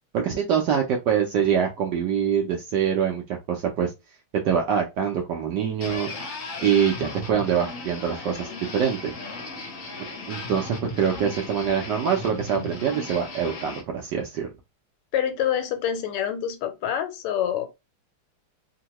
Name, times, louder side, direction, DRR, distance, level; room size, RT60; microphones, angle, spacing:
voice 1, 0.1-3.9 4.4-6.1 6.6-9.1 10.3-14.5, right 8 dB, 75° right, 1.0 m, -24 dB
sound 1, 5.8-13.8, left 3 dB, 60° left, 0.8 m, -36 dB
voice 2, 15.1-17.7, left 9 dB, 85° left, 1.6 m, -26 dB
3.6 x 2.1 x 2.9 m
omnidirectional pair, 2.4 m